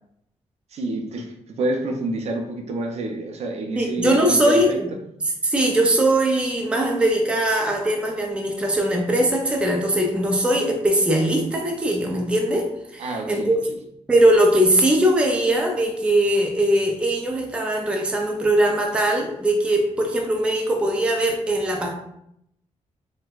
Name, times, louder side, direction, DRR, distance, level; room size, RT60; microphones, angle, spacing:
voice 1, 0.7-4.8 13.0-13.6, right 2 dB, 65° right, 2 dB, 0.5 m, -28 dB
voice 2, 3.8-4.9 5.4-13.6 14.1-21.9, right 1 dB, 10° right, 1 dB, 0.4 m, -20 dB
4.2 x 2.1 x 2.3 m, 0.76 s
wide cardioid pair, 150°, 12 cm